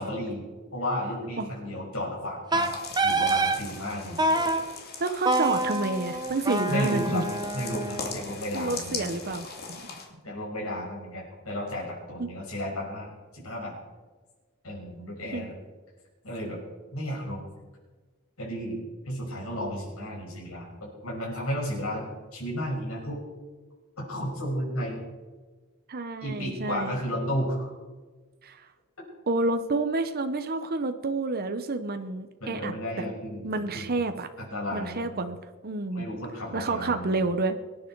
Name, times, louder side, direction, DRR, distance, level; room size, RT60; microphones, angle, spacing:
voice 1, 0.0-2.7 3.0-4.2 6.7-7.3 7.5-9.1 10.2-13.7 14.6-15.5 16.2-16.6 16.9-17.4 18.4-22.0 22.3-23.2 24.0-25.0 26.2-27.7 32.4-34.0 34.5-35.2 35.9-37.2, equal, 85° left, -3 dB, 5.9 m, -33 dB
Wind instrument woodwind instrument, 2.5-3.6 4.2-4.6 5.3-8.3, right 2 dB, 20° right, 0.9 m, -26 dB
sound 1, 2.6-10.1, left 4 dB, 50° left, 2.6 m, -40 dB
voice 2, 5.0-7.3 8.5-10.0 12.2-12.3 15.3-15.5 25.9-27.0 28.4-28.6 29.3-32.7 33.4-34.3 34.7-35.4 35.6-36.0 36.5-37.6, right 3 dB, 45° right, 8 dB, 0.9 m, -29 dB
24.5 x 9.8 x 4.7 m, 1.3 s
head